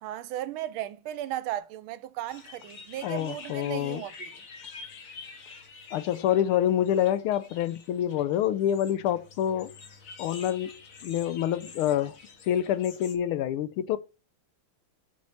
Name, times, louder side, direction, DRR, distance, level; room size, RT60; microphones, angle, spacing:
voice 1, 0.0-4.4, right 13 dB, 75° right, 1.4 m, -36 dB
sound 1, 2.3-13.2, left 4 dB, 45° left, 1.3 m, -47 dB
voice 2, 3.0-4.0 5.9-9.7 10.2-12.2 12.5-14.0, left 11 dB, 85° left, 1.5 m, -27 dB
7.3 x 4.6 x 5.7 m
omnidirectional pair, 2.4 m